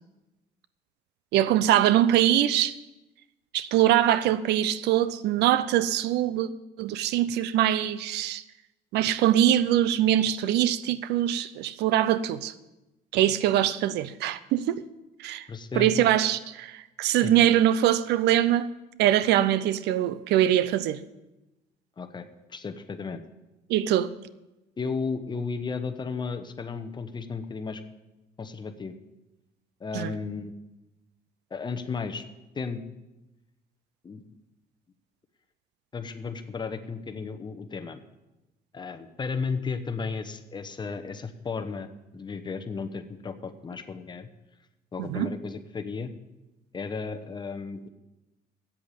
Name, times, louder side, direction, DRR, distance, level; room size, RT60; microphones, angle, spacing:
voice 1, 1.3-2.7 3.5-6.5 6.8-8.4 8.9-12.5 13.1-14.9 15.2-15.5 15.7-18.7 19.0-21.0 23.7-24.1 29.9-30.1 45.0-45.3, right 12 dB, 80° right, 0.6 m, -23 dB
voice 2, 15.5-16.1 17.2-17.3 22.0-23.2 24.8-27.8 28.4-28.9 29.8-30.5 31.5-32.2 32.5-32.8 34.0-34.2 35.9-38.0 38.7-44.3 44.9-46.1 46.7-47.9, left 5 dB, 25° left, 0.9 m, -34 dB
8.6 x 7.7 x 9.0 m
cardioid pair, 110°, 17 cm